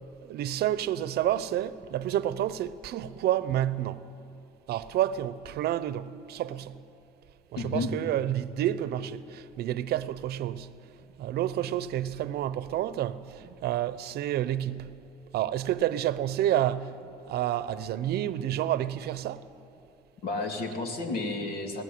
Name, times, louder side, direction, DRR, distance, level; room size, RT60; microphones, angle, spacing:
voice 1, 0.2-4.1 4.7-6.8 7.5-10.8 11.2-15.0 15.3-19.4, right 12 dB, 70° right, 0.7 m, -29 dB
voice 2, 7.6-7.9 20.2-21.8, left 3 dB, 65° left, 2.7 m, -31 dB
19.0 x 16.0 x 9.4 m
cardioid pair, 110°, 17 cm